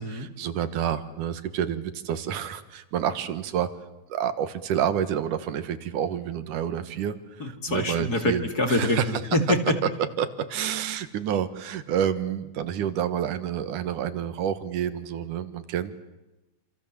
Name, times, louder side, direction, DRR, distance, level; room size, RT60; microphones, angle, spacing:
voice 1, 0.0-3.7 4.1-9.2 9.8-9.9 10.2-15.9, right 9 dB, 80° right, 12 dB, 3.0 m, -29 dB
voice 2, 7.4-9.8, left 1 dB, 30° left, 6 dB, 2.6 m, -25 dB
28.0 x 27.0 x 7.5 m, 1.0 s
omnidirectional pair, 3.6 m